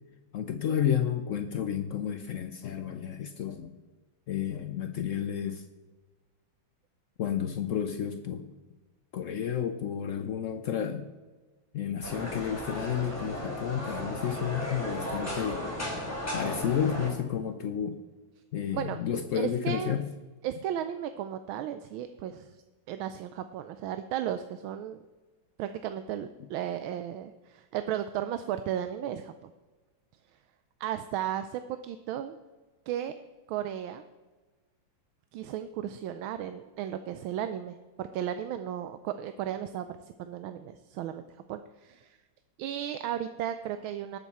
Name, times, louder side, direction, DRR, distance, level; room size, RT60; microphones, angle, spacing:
voice 1, 0.3-3.8 4.3-5.6 7.2-8.5 9.1-11.1 11.7-15.6 16.3-18.0 18.5-20.1, left 9 dB, 90° left, 8 dB, 0.6 m, -31 dB
sound 1, 12.0-17.1, equal, 5° left, 3.1 m, -35 dB
voice 2, 19.3-20.0 20.4-22.6 22.9-25.0 25.6-29.5 30.8-32.4 32.9-33.1 33.5-34.0 35.3-39.9 40.2-41.2 41.5-42.2 42.6-44.2, right 10 dB, 90° right, 10 dB, 1.4 m, -35 dB
19.0 x 7.0 x 4.2 m, 1.3 s
omnidirectional pair, 2.2 m